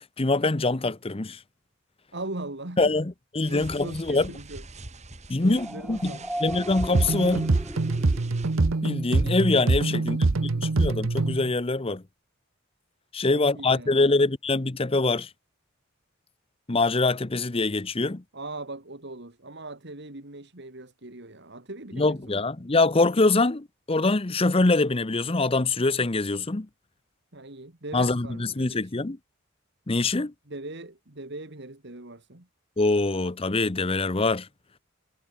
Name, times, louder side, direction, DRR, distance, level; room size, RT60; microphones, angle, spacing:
voice 1, 0.0-1.4 2.8-4.3 5.3-7.5 8.8-12.0 13.1-15.3 16.7-18.2 21.9-26.7 27.9-29.2 29.9-30.3 32.8-34.5, left 3 dB, 25° left, 0.8 m, -24 dB
voice 2, 2.1-2.9 3.5-4.6 5.4-6.4 9.9-10.4 13.3-14.0 18.3-22.4 27.3-29.1 30.5-32.5, right 2 dB, 55° right, 2.3 m, -40 dB
sound 1, 3.4-8.6, right 2 dB, 35° right, 2.2 m, -42 dB
sound 2, 5.6-9.3, equal, 5° right, 1.1 m, -37 dB
sound 3, 6.9-11.5, right 3 dB, 75° right, 0.8 m, -24 dB
head